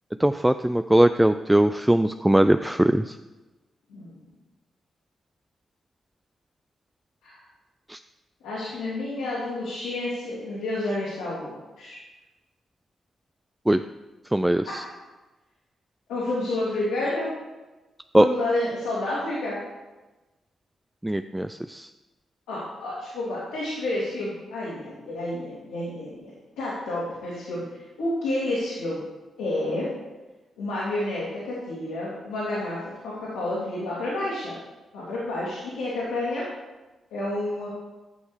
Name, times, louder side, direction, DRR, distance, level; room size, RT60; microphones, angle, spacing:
voice 1, 0.2-3.1 7.9-8.0 13.7-13.8 14.3-14.8 18.1-18.3 21.0-21.9, right 1 dB, 10° right, 9 dB, 0.4 m, -20 dB
voice 2, 8.4-12.0 14.6-14.8 16.1-17.3 18.1-19.6 22.5-26.3 26.6-29.0 29.4-29.9 30.6-34.6 34.9-36.4 37.1-37.7, left 1 dB, 85° left, -8 dB, 2.5 m, -30 dB
10.5 x 6.4 x 4.9 m, 1.1 s
hypercardioid pair, 40°, 0 cm